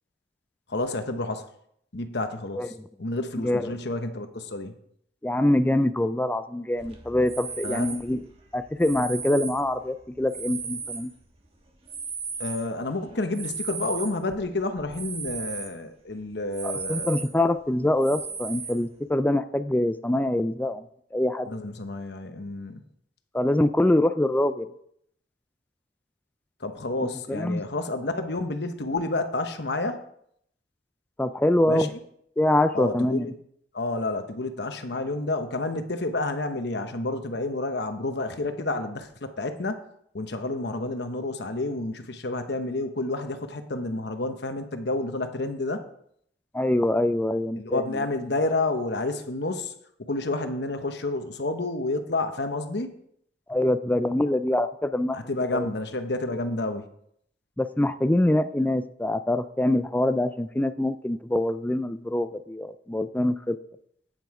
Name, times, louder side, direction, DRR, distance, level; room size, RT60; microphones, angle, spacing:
voice 1, 0.7-1.5 1.9-2.7 3.0-4.7 7.6-7.9 12.4-17.2 21.5-22.8 26.6-30.0 31.7-31.9 32.7-33.3 33.7-39.8 40.1-45.8 47.6-49.7 50.0-52.9 55.1-56.9, left 2 dB, 60° left, 8 dB, 1.0 m, -30 dB
voice 2, 2.5-2.9 3.4-3.8 5.2-8.2 8.5-11.1 16.6-20.9 21.1-21.5 23.3-24.7 27.3-27.6 31.2-31.9 32.4-33.3 46.5-48.0 53.5-55.2 55.5-55.7 57.6-63.6, left 1 dB, 10° left, 10 dB, 0.4 m, -24 dB
sound 1, 6.8-11.5 11.9-15.8 16.1-16.2 16.5-17.5 18.0-19.0, right 5 dB, 35° right, 1.5 m, -36 dB
9.3 x 7.8 x 4.9 m, 0.69 s
head